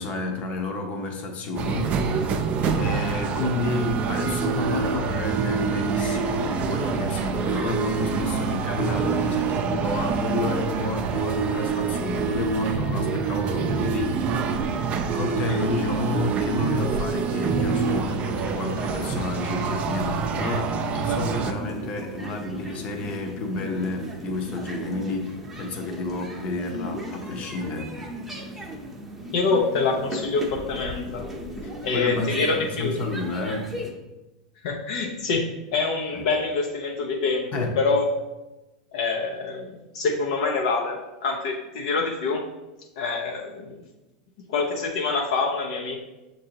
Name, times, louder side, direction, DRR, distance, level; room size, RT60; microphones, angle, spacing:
voice 1, 0.0-2.4 2.8-14.6 15.1-27.9 31.9-33.7 36.1-36.2 37.5-37.8, left 3 dB, 40° left, 3 dB, 0.8 m, -30 dB
sound 1, 1.6-21.5, right 5 dB, 40° right, 0.4 m, -26 dB
sound 2, 21.1-33.9, equal, 5° right, 0.7 m, -36 dB
voice 2, 29.3-31.3 31.8-33.0 34.6-38.1 38.9-42.5 43.0-43.8 44.5-46.0, left 4 dB, 70° left, 1 dB, 0.5 m, -26 dB
6.3 x 2.6 x 2.9 m, 1.0 s
hypercardioid pair, 110°, 4 cm